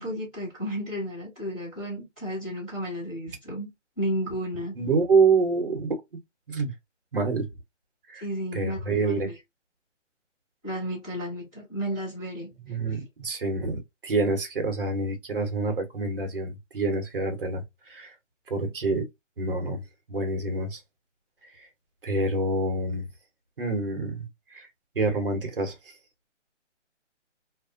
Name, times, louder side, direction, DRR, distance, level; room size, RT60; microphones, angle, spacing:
voice 1, 0.0-3.7 4.0-4.9 8.2-9.3 10.6-12.5, equal, 5° left, 0.8 m, -33 dB
voice 2, 4.8-6.0 6.5-6.7 7.1-7.5 8.1-8.2 8.5-9.3 12.6-18.1 18.5-19.0 19.4-19.8 20.1-20.8 21.6-21.7 22.0-23.1 23.6-24.7 24.9-25.9, right 3 dB, 45° right, 0.9 m, -27 dB
2.5 x 2.2 x 2.5 m
hypercardioid pair, 175°, 37 cm